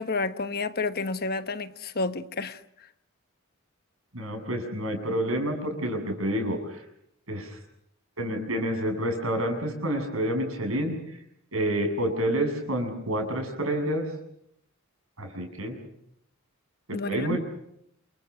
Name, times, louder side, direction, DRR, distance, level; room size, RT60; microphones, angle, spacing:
voice 1, 0.0-2.6 16.9-17.4, left 3 dB, 50° left, 1.2 m, -30 dB
voice 2, 4.1-6.8 7.3-7.6 8.2-10.9 11.5-14.1 15.2-15.8 16.9-17.4, right 1 dB, 85° right, 7.3 m, -28 dB
28.5 x 24.5 x 6.3 m
head